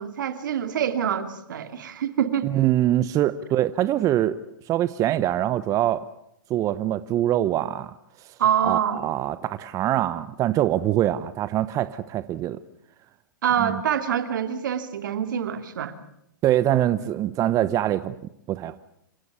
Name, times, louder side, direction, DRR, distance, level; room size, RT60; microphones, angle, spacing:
voice 1, 0.0-2.5 8.4-9.0 13.4-15.9, right 9 dB, 70° right, 10 dB, 2.6 m, -25 dB
voice 2, 2.4-4.3 4.7-6.0 6.5-7.9 8.6-12.6 13.6-13.8 16.4-18.1 18.5-18.8, right 13 dB, 30° right, 14 dB, 0.9 m, -23 dB
27.5 x 16.5 x 9.7 m, 0.76 s
hypercardioid pair, 120°, 11 cm